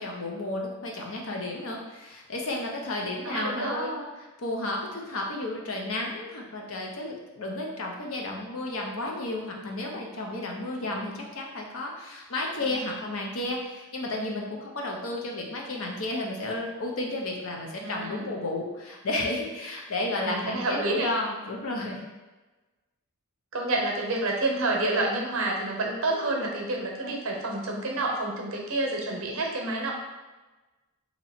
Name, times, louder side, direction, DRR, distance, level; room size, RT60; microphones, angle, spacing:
voice 1, 0.0-22.0 26.1-26.5, left 2 dB, 65° left, 0 dB, 0.7 m, -32 dB
voice 2, 3.2-3.9 12.6-12.7 17.8-18.3 20.2-21.1 23.5-29.9, right 2 dB, 65° right, 0 dB, 0.7 m, -29 dB
2.9 x 2.8 x 4.2 m, 1.2 s
head